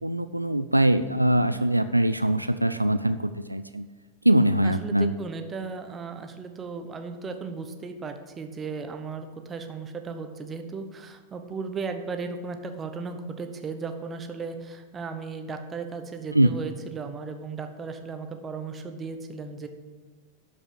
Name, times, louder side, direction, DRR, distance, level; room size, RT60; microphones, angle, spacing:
voice 1, 0.0-3.9 4.2-5.1 16.3-16.5, right 1 dB, 85° right, 11 dB, 0.3 m, -22 dB
voice 2, 4.6-19.7, right 4 dB, 20° right, 6 dB, 1.0 m, -36 dB
12.5 x 5.5 x 6.5 m, 1.4 s
figure-of-eight pair, 90°, 0 cm